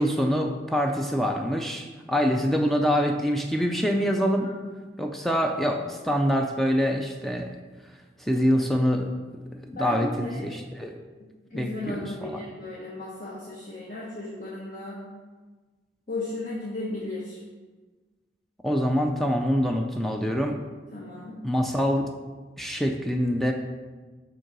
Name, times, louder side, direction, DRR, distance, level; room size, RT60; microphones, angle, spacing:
voice 1, 0.0-4.5 5.0-7.5 8.2-9.1 9.5-11.0 11.5-12.4 18.6-20.6 21.4-22.1 22.6-23.5, equal, ahead, 3 dB, 0.3 m, -25 dB
voice 2, 9.7-10.5 11.5-15.0 16.1-17.4 20.9-21.4, left 2 dB, 45° left, -6 dB, 1.0 m, -35 dB
5.4 x 3.8 x 5.9 m, 1.3 s
head